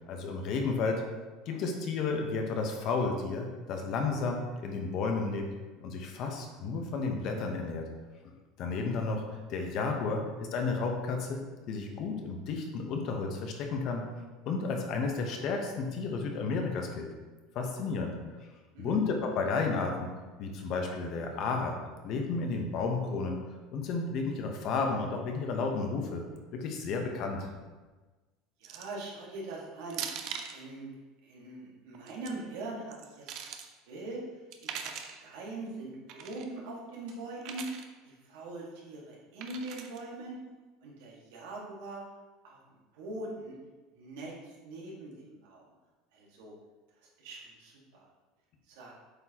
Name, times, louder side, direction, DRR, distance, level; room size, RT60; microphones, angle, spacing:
voice 1, 0.1-1.0 1.5-5.5 5.8-7.9 8.6-14.0 14.4-17.1 17.5-18.1 18.8-20.1 20.4-21.8 22.0-23.4 23.7-26.3 26.5-27.5, left 4 dB, 45° left, 3 dB, 1.0 m, -32 dB
sound 1, 28.6-29.0 29.9-30.6 31.9-32.3 32.9-33.7 34.5-35.2 36.1-36.5 37.4-37.9 39.4-40.0, right 7 dB, 50° right, 0.6 m, -40 dB
voice 2, 28.6-30.0 30.5-30.8 31.2-33.6 33.9-34.2 34.8-37.7 38.0-40.4 40.8-42.0 42.4-42.6 42.9-43.5 43.9-45.6 46.1-46.5 47.2-48.0 48.7-48.9, right 2 dB, 80° right, -4 dB, 1.8 m, -42 dB
7.8 x 4.4 x 2.9 m, 1.3 s
cardioid pair, 155°, 0 cm